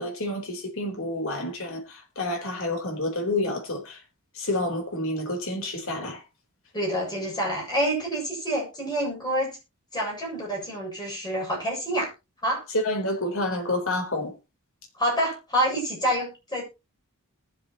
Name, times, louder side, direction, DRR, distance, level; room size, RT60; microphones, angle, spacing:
voice 1, 0.0-4.0 4.3-6.2 12.7-14.3, left 1 dB, 65° left, 4.0 m, -29 dB
voice 2, 6.7-9.6 9.9-12.1 12.4-12.6 14.9-16.6, right 1 dB, 20° left, 7.4 m, -27 dB
20.5 x 7.6 x 3.0 m
head